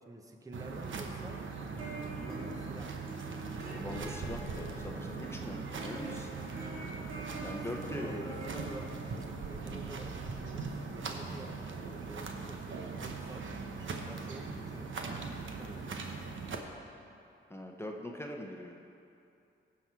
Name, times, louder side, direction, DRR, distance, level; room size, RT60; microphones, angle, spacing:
voice 1, 0.1-1.4 2.1-3.1 7.1-7.3 7.8-8.9 9.5-11.6 12.0-13.4 14.1-14.9 15.4-16.0, right 1 dB, 15° right, 3 dB, 0.9 m, -48 dB
grass footsteps, 0.5-16.6, right 4 dB, 70° right, 1.0 m, -40 dB
Two String Sing, 1.6-10.8, right 1 dB, 90° right, 2.0 m, -46 dB
voice 2, 3.7-6.3 7.4-8.3 17.5-18.7, left 1 dB, 10° left, 1 dB, 0.9 m, -42 dB
16.5 x 6.1 x 4.6 m, 2.7 s
cardioid pair, 85°, 21 cm